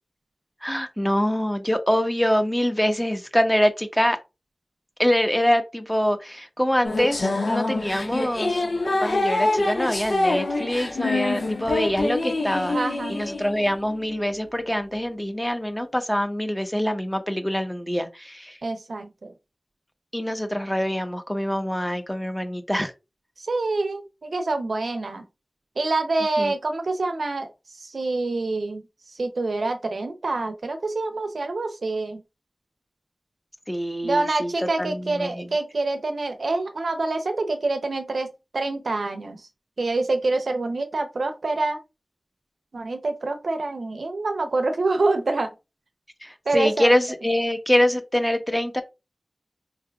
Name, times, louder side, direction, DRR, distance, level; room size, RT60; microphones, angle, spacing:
voice 1, 0.6-4.2 5.0-8.6 9.0-12.8 13.1-18.6 20.1-22.9 26.4-26.5 33.7-34.5 34.8-35.5 46.2-48.8, equal, 10° left, 0.9 m, -24 dB
sound 1, 6.8-14.2, left 2 dB, 85° left, 1.1 m, -25 dB
voice 2, 12.7-13.2 18.6-19.3 23.4-25.2 25.8-27.5 27.8-28.8 29.2-32.2 34.0-39.4 39.8-41.8 42.7-45.5 46.5-46.9, right 3 dB, 85° right, 0.6 m, -26 dB
4.5 x 3.3 x 2.3 m
cardioid pair, 40°, 0 cm